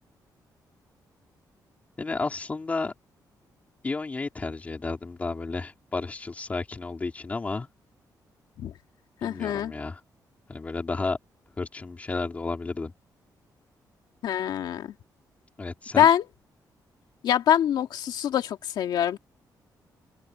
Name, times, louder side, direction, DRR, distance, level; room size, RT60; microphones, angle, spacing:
voice 1, 2.0-2.9 3.8-7.7 9.2-10.0 10.5-11.2 11.6-12.9 15.6-16.1, left 3 dB, 20° left, 3.5 m, -32 dB
voice 2, 9.2-9.7 14.2-14.9 16.0-16.3 17.2-19.2, left 10 dB, 85° left, 2.1 m, -24 dB
open air
wide cardioid pair, 180°, 7 cm